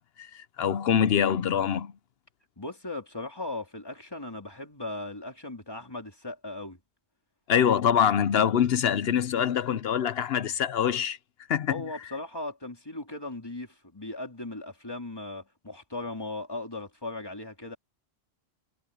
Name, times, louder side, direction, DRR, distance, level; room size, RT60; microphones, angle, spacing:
voice 1, 0.0-1.9 7.5-11.2 11.5-11.8, left 8 dB, 60° left, 0.8 m, -24 dB
voice 2, 2.6-6.8 11.7-17.8, left 2 dB, 20° left, 3.2 m, -38 dB
omnidirectional pair, 1.3 m